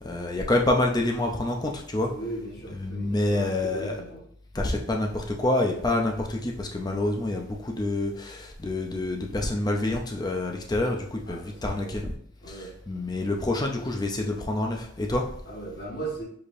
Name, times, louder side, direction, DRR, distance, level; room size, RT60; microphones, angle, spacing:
voice 1, 0.0-2.1 2.7-4.0 4.5-12.1 12.5-15.3, left 2 dB, 20° left, 1 dB, 0.4 m, -27 dB
voice 2, 2.0-4.2 11.3-11.5 11.8-11.9 12.4-12.7 15.5-16.2, right 2 dB, 55° left, -3 dB, 1.2 m, -37 dB
4.8 x 2.8 x 2.5 m, 0.64 s
head